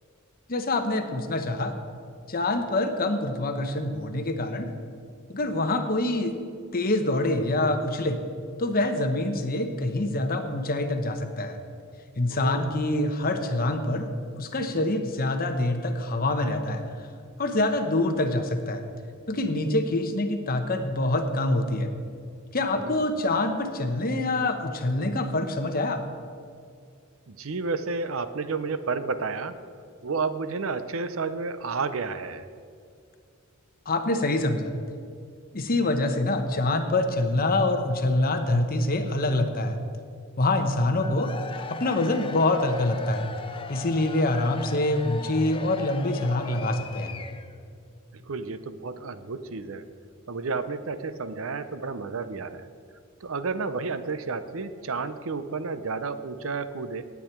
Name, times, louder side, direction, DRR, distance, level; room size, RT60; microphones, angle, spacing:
voice 1, 0.5-1.7 2.3-4.7 5.3-6.3 6.7-8.2 8.6-11.6 12.2-14.1 14.4-16.8 17.4-18.8 19.3-21.9 22.5-26.0 33.9-34.7 35.5-39.8 40.4-43.3 43.7-47.1, left 2 dB, 45° left, 6 dB, 1.1 m, -25 dB
voice 2, 12.3-12.7 22.7-23.0 27.3-29.6 30.0-32.5 48.1-49.8 50.3-52.7 53.2-57.0, right 4 dB, 70° right, 12 dB, 0.7 m, -31 dB
Cheering / Crowd, 40.9-47.6, left 5 dB, 25° left, 0.5 m, -39 dB
17.5 x 8.5 x 4.5 m, 2.3 s
head